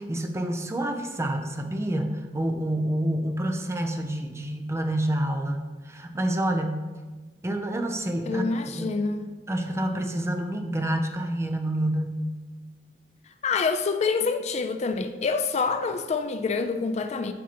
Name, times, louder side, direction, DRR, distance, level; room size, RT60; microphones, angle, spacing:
voice 1, 0.0-5.6 5.8-6.8 7.4-8.5 8.8-8.9 9.5-12.2, right 1 dB, 15° right, 0.5 m, -28 dB
voice 2, 8.3-9.4 13.4-17.3, left 4 dB, 40° left, 0.3 m, -27 dB
7.4 x 5.6 x 2.9 m
head